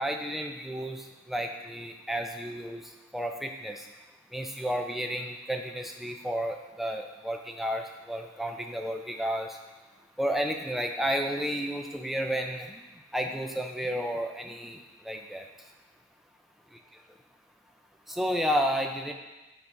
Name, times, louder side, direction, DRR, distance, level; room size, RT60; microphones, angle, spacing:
voice 1, 0.0-3.9 4.3-9.6 10.2-12.9 13.1-14.8 15.0-15.4 18.1-19.1, equal, ahead, 3 dB, 0.4 m, -32 dB
8.7 x 4.1 x 4.7 m, 1.1 s
head